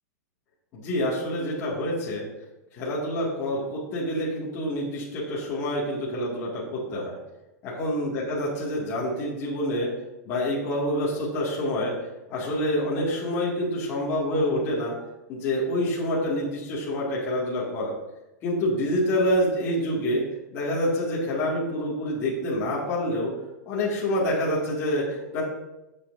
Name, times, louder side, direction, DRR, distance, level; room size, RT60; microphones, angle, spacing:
voice 1, 0.7-2.2 2.7-7.2 7.6-9.9 10.2-11.9 12.3-14.9 15.3-17.9 18.4-20.2 20.5-23.3 23.7-25.4, left 1 dB, 25° left, -7 dB, 2.4 m, -27 dB
14.0 x 7.5 x 2.8 m, 0.97 s
supercardioid pair, 165°, 9 cm